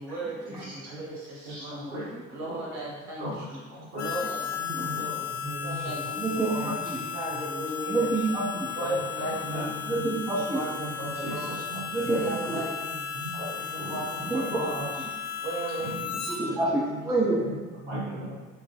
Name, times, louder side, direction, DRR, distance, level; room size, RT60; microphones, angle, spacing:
voice 1, 0.0-3.6 4.0-5.3 5.6-6.8 7.1-8.1 8.5-9.8 10.1-11.6 12.1-13.1 13.6-14.9 15.4-15.9, right 2 dB, 55° right, -5 dB, 1.3 m, -36 dB
voice 2, 1.5-2.0 2.4-2.6 3.2-3.4 3.7-4.1 4.6-5.0 5.3-6.1 6.5-6.7 9.2-10.0 11.2-11.3 11.7-12.2 13.1-14.0 15.8-15.9 16.4-16.6 16.9-17.1 17.4-18.3, right 1 dB, 80° right, -9 dB, 1.5 m, -37 dB
Harmonica, 4.0-16.4, left 7 dB, 70° left, 0.5 m, -35 dB
voice 3, 6.2-6.5 7.9-8.7 9.9-10.6 11.9-12.6 14.3-14.7 16.3-17.4, right 2 dB, 10° right, -2 dB, 0.5 m, -27 dB
3.7 x 2.2 x 3.2 m, 1.4 s
figure-of-eight pair, 60°, 35 cm